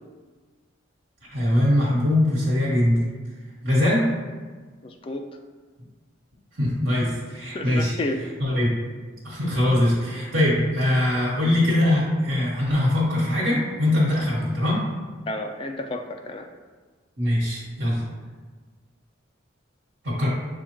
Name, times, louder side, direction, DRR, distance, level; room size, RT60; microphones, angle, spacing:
voice 1, 1.3-3.0 3.6-4.0 6.6-8.0 8.4-8.7 9.2-14.8 17.2-18.0 20.0-20.3, left 1 dB, 80° right, -7 dB, 1.4 m, -22 dB
voice 2, 4.8-5.3 7.5-8.2 11.1-11.2 15.3-16.5, left 2 dB, 25° left, 4 dB, 0.3 m, -31 dB
6.9 x 2.4 x 3.0 m, 1.4 s
head